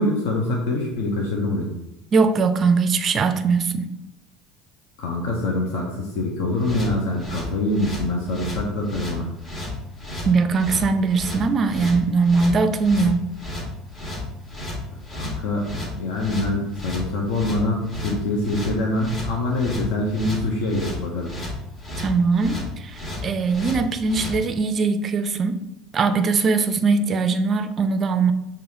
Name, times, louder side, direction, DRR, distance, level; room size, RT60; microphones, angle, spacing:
voice 1, 0.0-1.7 5.0-9.3 15.1-21.3, left 2 dB, 60° left, 0.6 m, -25 dB
voice 2, 2.1-3.9 10.2-13.2 22.0-25.6 25.9-28.3, right 4 dB, 35° right, 0.4 m, -21 dB
sound 1, 6.6-24.4, left 1 dB, 35° left, 1.4 m, -33 dB
6.2 x 2.4 x 2.8 m
figure-of-eight pair, 65°, 0 cm